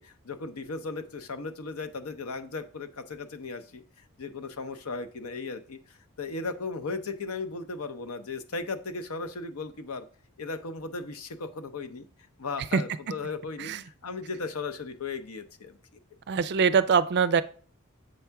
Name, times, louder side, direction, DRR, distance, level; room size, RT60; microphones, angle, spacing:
voice 1, 0.0-10.0 10.4-12.1 12.4-15.8, left 3 dB, 85° left, 9 dB, 0.7 m, -36 dB
voice 2, 16.3-17.4, right 6 dB, 50° right, 14 dB, 0.4 m, -23 dB
7.7 x 3.5 x 5.7 m, 0.42 s
head